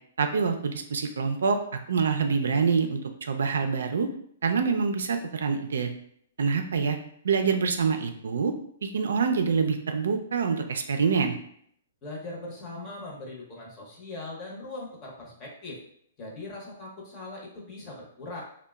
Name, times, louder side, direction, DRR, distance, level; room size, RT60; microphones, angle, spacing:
voice 1, 0.2-1.6 1.9-4.1 4.4-5.9 6.4-7.0 7.2-8.5 8.8-11.3, right 5 dB, 80° right, 6 dB, 0.3 m, -26 dB
voice 2, 12.0-15.8 16.2-18.4, left 2 dB, 25° left, -3 dB, 0.7 m, -40 dB
2.8 x 2.1 x 2.2 m, 0.66 s
hypercardioid pair, 145°, 0 cm